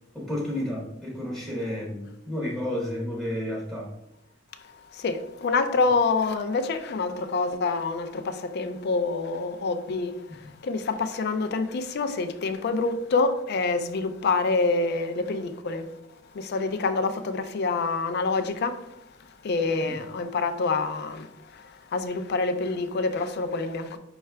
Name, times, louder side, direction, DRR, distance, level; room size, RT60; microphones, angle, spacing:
voice 1, 0.1-3.9 19.8-19.9, left 1 dB, ahead, 0.7 m, -31 dB
voice 2, 4.6-15.9 16.3-19.0 19.4-24.0, left 3 dB, 55° left, 0.4 m, -27 dB
5.4 x 2.4 x 3.3 m
head